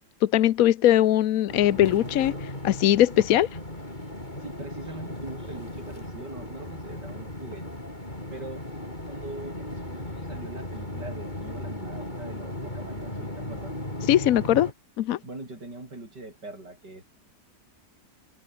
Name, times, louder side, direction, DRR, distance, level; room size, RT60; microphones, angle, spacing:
voice 1, 0.2-3.5 14.0-14.7 15.0-15.2, left 12 dB, 65° left, 1.0 m, -21 dB
sound 1, 1.5-14.7, left 1 dB, 25° left, 6.6 m, -36 dB
voice 2, 4.4-7.8 8.3-8.7 9.0-13.7 15.2-17.0, right 2 dB, 70° right, 8.3 m, -42 dB
omnidirectional pair, 1.9 m